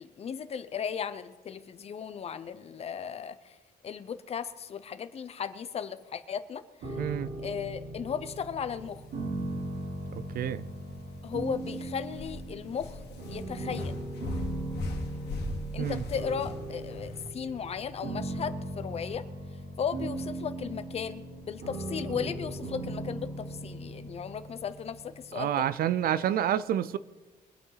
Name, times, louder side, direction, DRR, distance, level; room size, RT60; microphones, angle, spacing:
voice 1, 0.0-3.6 3.8-7.0 7.4-9.0 11.2-13.0 13.3-14.0 15.7-19.2 19.8-25.6, left 7 dB, 35° left, 0.7 m, -36 dB
sound 1, 6.8-25.8, right 1 dB, 75° right, 3.2 m, -38 dB
voice 2, 7.0-7.3 10.1-10.6 15.8-16.0 25.4-27.0, right 10 dB, 60° right, 0.5 m, -28 dB
sound 2, 8.8-17.3, left 2 dB, 75° left, 2.1 m, -40 dB
23.0 x 9.0 x 4.0 m
cardioid pair, 175°, 17 cm